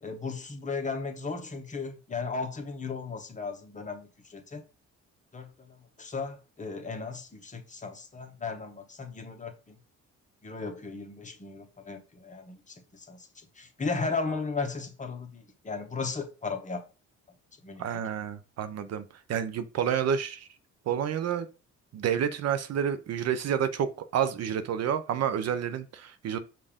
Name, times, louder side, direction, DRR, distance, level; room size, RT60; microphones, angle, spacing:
voice 1, 0.0-4.6 5.3-9.8 10.4-13.3 13.6-16.8 17.6-17.9, left 4 dB, 25° left, 0.9 m, -36 dB
voice 2, 17.8-19.0 19.3-20.5 20.9-21.5 21.9-26.4, right 8 dB, 55° right, 0.5 m, -29 dB
5.3 x 2.5 x 3.5 m
cardioid pair, 90°, 30 cm